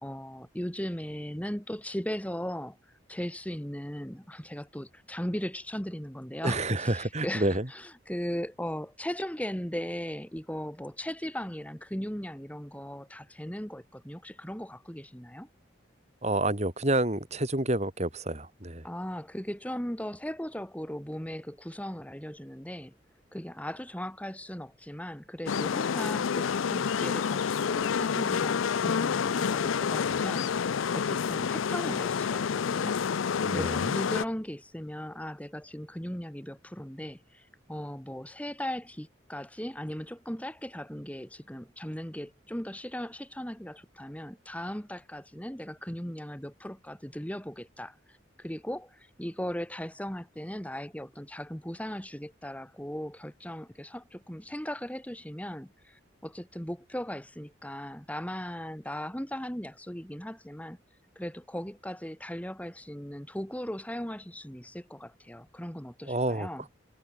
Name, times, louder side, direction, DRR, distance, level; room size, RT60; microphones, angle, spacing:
voice 1, 0.0-15.5 18.8-22.9 23.3-33.2 33.5-60.8 61.2-66.7, equal, 5° left, 2.4 m, -38 dB
voice 2, 6.4-7.7 16.2-18.9 33.4-34.0 66.1-66.5, right 1 dB, 35° right, 3.4 m, -29 dB
sound 1, 25.5-34.2, left 6 dB, 90° left, 0.5 m, -28 dB
head